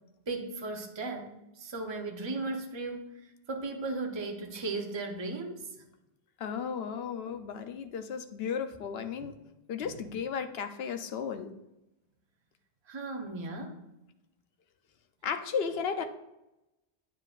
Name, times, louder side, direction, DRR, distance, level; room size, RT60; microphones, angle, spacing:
voice 1, 0.3-3.1 3.5-5.7 9.2-9.3 12.9-13.8, right 3 dB, 30° right, 2 dB, 0.7 m, -36 dB
voice 2, 6.4-9.4 9.7-11.5 15.2-16.0, left 6 dB, 70° left, 8 dB, 0.9 m, -34 dB
9.0 x 7.4 x 2.4 m, 0.94 s
omnidirectional pair, 1.1 m